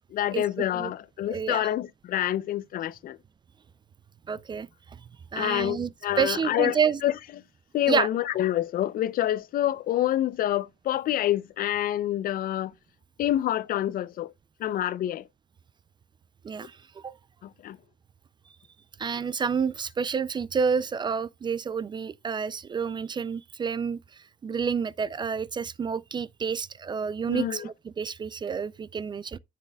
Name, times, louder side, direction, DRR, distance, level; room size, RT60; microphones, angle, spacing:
voice 1, 0.1-3.2 5.4-7.1 7.7-12.7 13.2-14.3 14.6-15.3 17.4-17.8 27.3-27.7, left 12 dB, 60° left, 0.6 m, -27 dB
voice 2, 1.3-1.7 4.3-5.0 5.3-5.9 6.2-7.0 7.9-8.1 16.4-17.1 19.0-29.4, right 6 dB, 25° right, 0.4 m, -29 dB
10.0 x 7.6 x 2.3 m
cardioid pair, 110°, 17 cm